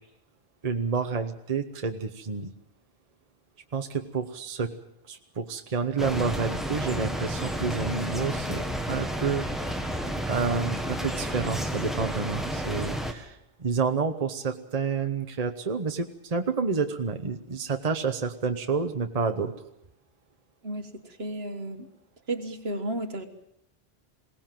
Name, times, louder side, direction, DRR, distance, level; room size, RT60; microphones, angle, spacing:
voice 1, 0.6-2.5 3.7-4.7 5.0-9.8 10.3-19.5, right 5 dB, 35° right, 6 dB, 1.1 m, -29 dB
sound 1, 6.0-13.1, equal, ahead, 1.7 m, -31 dB
voice 2, 20.6-21.9 22.3-23.2, right 1 dB, 65° right, 6 dB, 1.9 m, -33 dB
22.0 x 18.0 x 7.6 m, 0.78 s
omnidirectional pair, 1.1 m